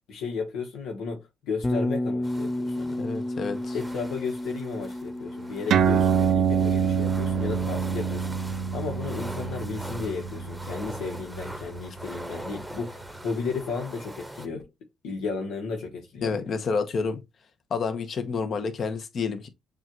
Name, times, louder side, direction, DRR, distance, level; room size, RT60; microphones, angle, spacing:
voice 1, 0.1-3.0 3.7-14.7 15.0-16.4, left 4 dB, 85° left, 1.2 m, -34 dB
Bass guitar, 1.6-9.7, left 1 dB, 15° left, 0.5 m, -33 dB
sound 1, 2.2-14.5, right 1 dB, 5° right, 0.9 m, -42 dB
voice 2, 3.0-3.7 16.2-17.2 17.7-19.5, left 5 dB, 55° left, 0.9 m, -29 dB
sound 2, 5.7-12.6, right 7 dB, 70° right, 0.5 m, -26 dB
7.1 x 2.5 x 2.9 m
cardioid pair, 90°, 0 cm